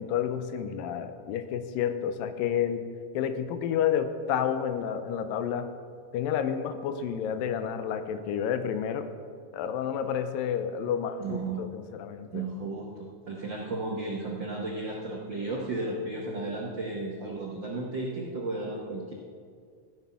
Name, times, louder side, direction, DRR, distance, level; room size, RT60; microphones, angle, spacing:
voice 1, 0.0-2.8 3.1-5.7 6.1-9.1 9.5-12.5, left 8 dB, 80° left, 9 dB, 2.3 m, -30 dB
voice 2, 11.2-11.6 12.3-19.1, right 2 dB, 90° right, -2 dB, 1.0 m, -34 dB
15.5 x 9.7 x 5.7 m, 2.1 s
omnidirectional pair, 4.2 m